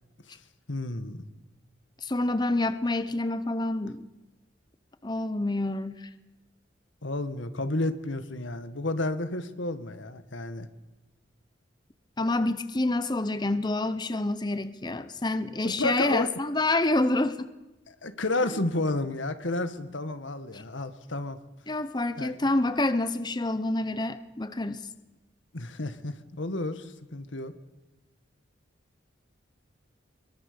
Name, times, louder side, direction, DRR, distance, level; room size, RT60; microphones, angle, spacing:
voice 1, 0.7-1.2 7.0-10.7 15.6-16.3 17.9-21.4 22.2-22.3 25.5-27.5, left 2 dB, 85° left, 10 dB, 1.8 m, -31 dB
voice 2, 2.0-4.0 5.0-6.1 12.2-17.5 18.5-18.6 20.5-20.6 21.7-24.9, left 2 dB, 25° left, 11 dB, 0.9 m, -27 dB
25.0 x 23.0 x 6.9 m, 1.1 s
head